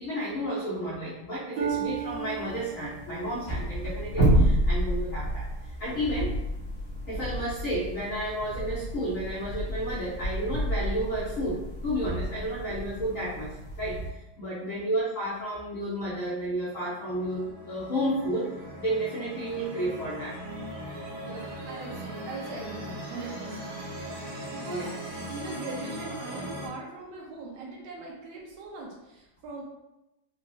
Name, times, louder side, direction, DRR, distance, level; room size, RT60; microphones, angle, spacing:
voice 1, 0.0-5.5 5.8-6.4 7.1-14.0 14.4-18.5 18.8-20.4 24.7-24.9, right 1 dB, 85° left, -8 dB, 0.7 m, -31 dB
sound 1, 1.6-14.1, right 1 dB, 50° left, 0.4 m, -30 dB
Harp, 1.6-5.3 5.9-6.3 6.9-7.0, right 8 dB, 90° right, 1.6 m, -37 dB
voice 2, 14.6-15.1 20.9-23.8 24.5-29.6, right 3 dB, 75° right, -2 dB, 1.5 m, -41 dB
sound 2, 16.7-26.7, right 1 dB, 55° right, 1.6 m, -39 dB
4.0 x 2.0 x 2.5 m, 0.93 s
omnidirectional pair, 2.3 m